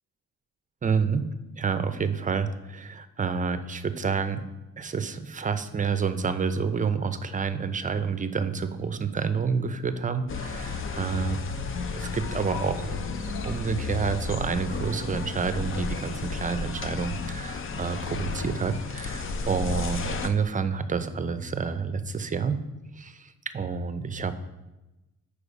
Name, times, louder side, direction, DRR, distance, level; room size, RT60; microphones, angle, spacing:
voice 1, 0.8-1.2 1.6-4.4 4.8-11.6 11.9-22.6 23.0-24.4, right 5 dB, 25° right, 10 dB, 0.6 m, -29 dB
sound 1, 10.3-20.3, left 4 dB, 45° left, 0.7 m, -33 dB
6.8 x 4.9 x 4.9 m, 1.0 s
cardioid pair, 90°, 30 cm